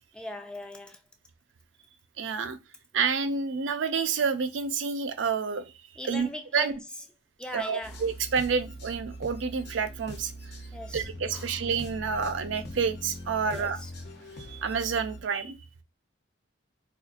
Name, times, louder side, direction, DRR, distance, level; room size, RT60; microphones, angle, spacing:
voice 1, 0.1-1.0 6.0-6.8 7.4-8.0 10.7-11.1 11.3-11.5 13.5-13.9, left 1 dB, 5° left, 0.4 m, -39 dB
voice 2, 2.2-2.6 2.9-5.7 6.0-6.3 6.5-6.7 7.5-10.3 10.9-13.8 14.5-15.6, right 5 dB, 90° right, 0.5 m, -29 dB
sound 1, 7.8-15.2, equal, 60° left, 0.8 m, -42 dB
4.2 x 2.4 x 2.4 m
head